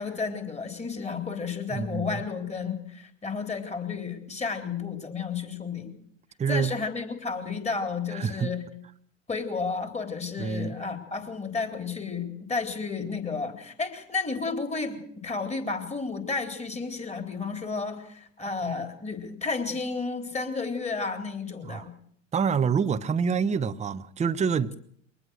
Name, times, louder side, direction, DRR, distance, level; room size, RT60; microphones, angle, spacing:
voice 1, 0.0-6.0 6.5-8.7 9.3-21.9, left 4 dB, 15° left, 3.9 m, -32 dB
voice 2, 1.7-2.2 6.4-6.7 8.1-8.5 10.4-10.8 21.6-21.9 22.3-24.8, right 6 dB, 20° right, 0.9 m, -27 dB
23.0 x 20.0 x 6.5 m
hypercardioid pair, 80°, 38 cm